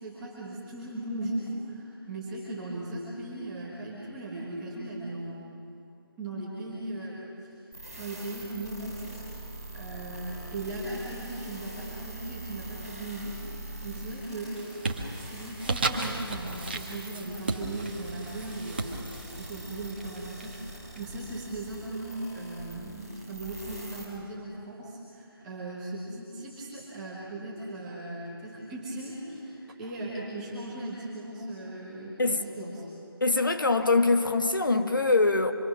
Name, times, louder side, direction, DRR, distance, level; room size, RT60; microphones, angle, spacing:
voice 1, 0.0-5.5 6.2-7.5 7.9-9.0 9.7-14.6 15.1-19.1 19.3-32.8, right 2 dB, 5° right, 1.4 m, -38 dB
sound 1, 7.7-24.0, right 2 dB, 10° left, 3.0 m, -43 dB
sound 2, 13.6-14.0 14.4-21.0, right 2 dB, 25° right, 1.3 m, -35 dB
voice 2, 33.2-35.5, left 3 dB, 55° left, 1.4 m, -23 dB
25.5 x 23.0 x 6.2 m
figure-of-eight pair, 180°, 13 cm